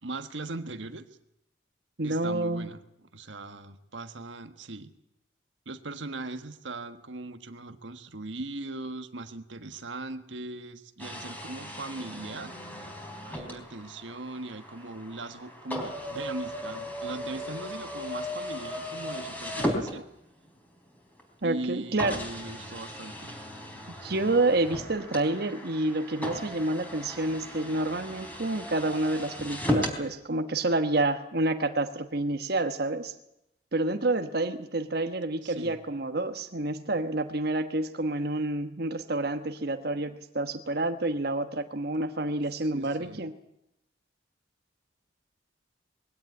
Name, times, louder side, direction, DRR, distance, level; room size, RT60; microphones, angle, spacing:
voice 1, 0.0-1.0 2.0-2.8 3.1-4.9 5.6-12.5 13.2-20.0 21.4-23.4 35.4-35.8 42.7-43.2, right 2 dB, 80° right, 8 dB, 1.4 m, -39 dB
voice 2, 2.0-2.7 21.4-22.2 24.0-33.1 33.7-43.3, right 2 dB, 55° right, 7 dB, 1.3 m, -28 dB
sound 1, 11.0-20.5 21.2-21.3 22.0-30.0, equal, 10° left, 3.8 m, -36 dB
21.0 x 16.5 x 9.5 m, 0.82 s
head